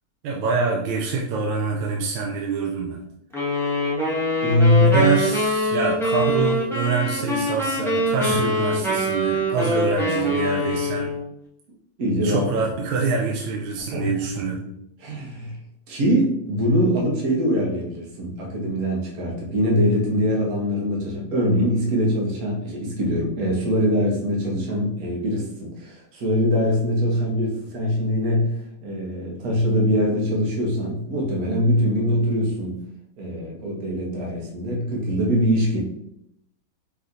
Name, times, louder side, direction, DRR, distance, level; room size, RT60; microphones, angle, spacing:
voice 1, 0.2-3.0 4.8-11.2 12.2-14.7, right 4 dB, 80° right, -1 dB, 1.4 m, -25 dB
sound 1, 3.3-11.3, equal, 5° left, 0.3 m, -24 dB
voice 2, 4.4-5.0 8.3-8.4 12.0-12.7 13.9-14.1 15.0-15.6 15.9-32.8 33.2-35.8, equal, 50° right, -1 dB, 1.3 m, -22 dB
5.2 x 3.2 x 2.6 m, 0.76 s
omnidirectional pair, 2.2 m